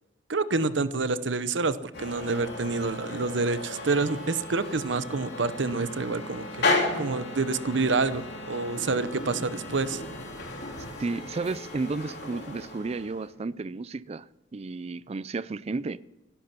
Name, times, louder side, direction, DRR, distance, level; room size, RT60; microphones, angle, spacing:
voice 1, 0.3-10.0, right 3 dB, 75° right, 0.8 m, -28 dB
sound 1, 1.9-13.3, left 2 dB, 60° left, 3.3 m, -34 dB
voice 2, 11.0-14.3 14.5-16.0, right 3 dB, 35° right, 0.4 m, -32 dB
16.0 x 11.5 x 5.9 m
head